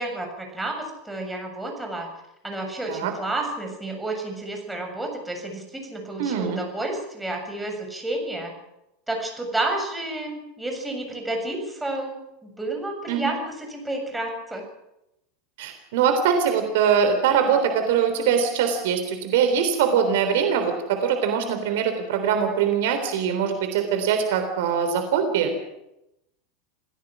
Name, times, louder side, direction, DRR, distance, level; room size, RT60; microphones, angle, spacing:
voice 1, 0.0-2.1 2.4-8.5 9.1-14.7, right 2 dB, 5° right, 2 dB, 7.4 m, -30 dB
voice 2, 6.2-6.6 13.1-13.3 15.6-25.5, right 7 dB, 60° right, 7 dB, 3.5 m, -22 dB
27.5 x 16.5 x 6.3 m, 0.87 s
figure-of-eight pair, 85°, 0 cm